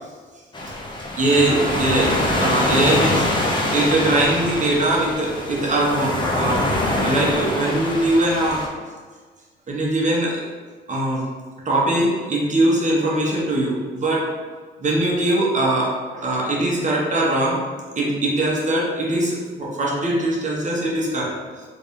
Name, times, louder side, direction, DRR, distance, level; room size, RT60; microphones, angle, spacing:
sound 1, 0.5-8.7, left 1 dB, 25° left, 0.7 m, -24 dB
voice 1, 1.2-3.2 3.7-6.6 7.0-8.7 9.7-10.4 10.9-11.2 11.6-14.2 14.8-17.6 18.0-21.3, right 1 dB, 40° right, -4 dB, 1.1 m, -21 dB
3.3 x 2.7 x 3.6 m, 1.5 s
cardioid pair, 90°, 20 cm